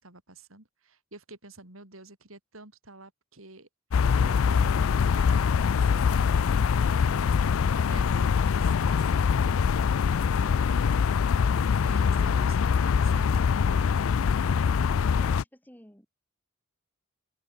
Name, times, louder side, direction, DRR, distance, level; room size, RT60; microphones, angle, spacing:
voice 1, 0.0-3.7 4.2-6.6 6.8-10.9 11.8-13.4, right 2 dB, 85° right, 6.6 m, -48 dB
sound 1, 3.9-15.4, left 6 dB, 85° left, 0.4 m, -24 dB
voice 2, 15.0-16.1, equal, 10° left, 7.2 m, -52 dB
open air
head